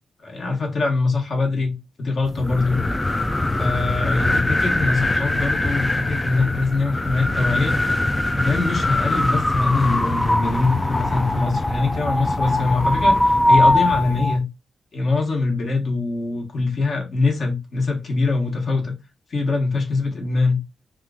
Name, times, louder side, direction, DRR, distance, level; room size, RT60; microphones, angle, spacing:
voice 1, 0.2-1.7 2.0-2.8 3.6-7.8 8.3-14.4 14.9-18.9 19.3-20.6, left 3 dB, 50° left, 1.2 m, -23 dB
sound 1, 2.3-14.4, left 1 dB, 15° left, 0.3 m, -21 dB
3.0 x 2.4 x 3.6 m
wide cardioid pair, 130°, 0 cm